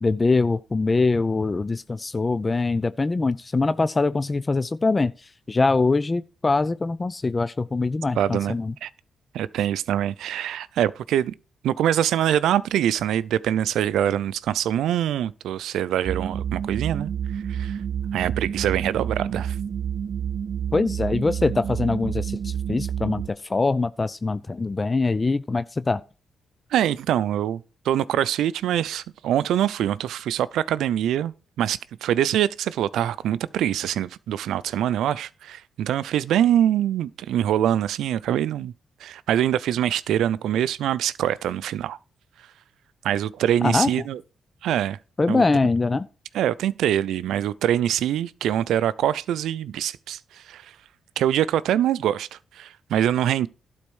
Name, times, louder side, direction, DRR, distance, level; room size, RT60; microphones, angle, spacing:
voice 1, 0.0-8.7 20.7-26.0 43.6-43.9 45.2-46.1, left 3 dB, 25° left, 0.4 m, -23 dB
voice 2, 8.2-8.5 8.8-8.9 9.3-11.3 11.6-17.8 18.1-19.6 26.7-38.7 39.0-42.0 43.0-44.2 44.6-45.0 45.3-45.4 46.3-50.7 51.2-53.5, right 11 dB, 90° right, 0.5 m, -24 dB
sound 1, 16.0-23.3, right 8 dB, 55° right, 1.0 m, -29 dB
12.0 x 4.2 x 6.3 m
cardioid pair, 85°, 0 cm